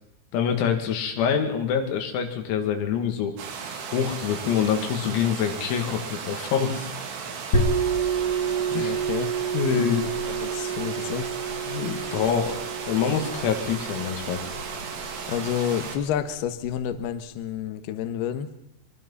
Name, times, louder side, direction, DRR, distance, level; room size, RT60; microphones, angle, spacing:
voice 1, 0.3-3.4 3.9-6.9 8.7-9.0 9.5-10.1 11.7-12.6 12.9-14.4, left 7 dB, 85° left, 5 dB, 5.2 m, -25 dB
sound 1, 3.4-16.0, right 5 dB, 70° right, 5.0 m, -35 dB
sound 2, 7.5-16.9, right 5 dB, 40° left, 3.2 m, -29 dB
voice 2, 8.7-9.3 9.7-11.3 15.3-18.5, left 9 dB, 70° left, 9 dB, 2.7 m, -30 dB
24.0 x 23.5 x 5.7 m, 0.77 s
omnidirectional pair, 6.0 m